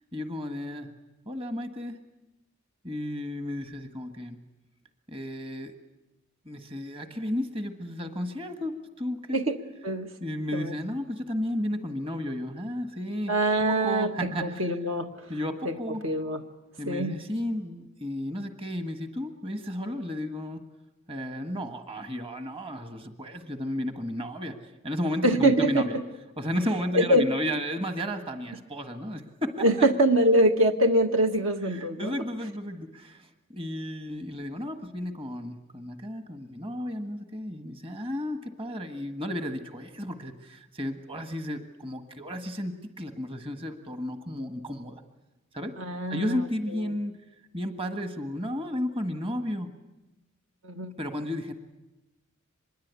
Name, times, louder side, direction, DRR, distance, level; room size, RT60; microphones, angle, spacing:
voice 1, 0.1-0.9 1.2-2.0 2.8-4.4 5.1-5.7 6.4-9.4 10.2-13.4 13.7-14.7 15.3-16.0 16.8-20.6 21.1-26.0 26.4-29.9 31.6-45.0 45.5-45.7 46.1-47.2 47.5-49.7 51.0-51.5, left 1 dB, 25° right, 6 dB, 1.6 m, -33 dB
voice 2, 9.8-10.1 10.5-10.7 13.3-15.3 15.7-16.4 16.9-17.2 25.2-26.0 26.9-27.3 29.6-32.1 45.8-46.4 46.8-46.9 50.6-50.9, right 1 dB, 70° right, 5 dB, 1.8 m, -24 dB
25.0 x 21.5 x 8.3 m, 1.0 s
head